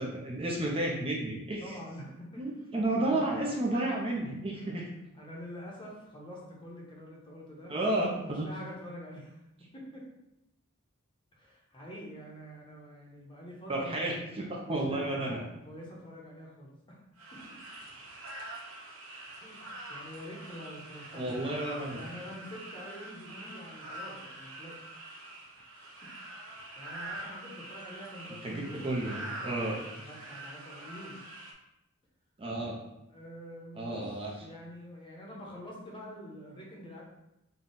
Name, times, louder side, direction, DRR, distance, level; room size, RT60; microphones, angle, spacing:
voice 1, 0.0-1.7 2.4-4.9 7.7-8.4 13.7-15.4 21.1-22.0 28.4-29.8 32.4-32.7 33.8-34.3, right 1 dB, 25° right, -2 dB, 0.6 m, -32 dB
voice 2, 1.6-2.7 3.0-3.4 3.7-4.0 4.5-4.7 5.2-7.7 8.1-9.4 9.7-10.1 11.3-14.2 14.6-17.0 17.3-17.6 19.4-24.8 25.6-25.8 26.0-26.4 26.8-28.8 29.4-31.2 33.1-37.0, equal, 25° left, -3 dB, 0.8 m, -46 dB
sound 1, 17.2-31.5, right 1 dB, 65° right, 0.7 m, -45 dB
4.0 x 2.3 x 3.8 m, 0.88 s
head